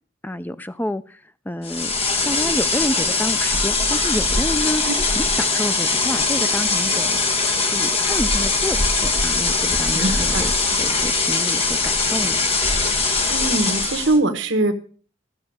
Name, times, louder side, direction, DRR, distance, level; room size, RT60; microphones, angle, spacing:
voice 1, 0.2-1.2 1.5-1.9 2.2-12.4, left 1 dB, 10° left, 13 dB, 0.5 m, -29 dB
sound 1, 1.6-14.2, left 3 dB, 30° left, 1.4 m, -21 dB
voice 2, 9.9-10.5 13.3-14.7, right 2 dB, 70° right, 8 dB, 1.3 m, -22 dB
14.0 x 7.0 x 6.4 m, 0.43 s
head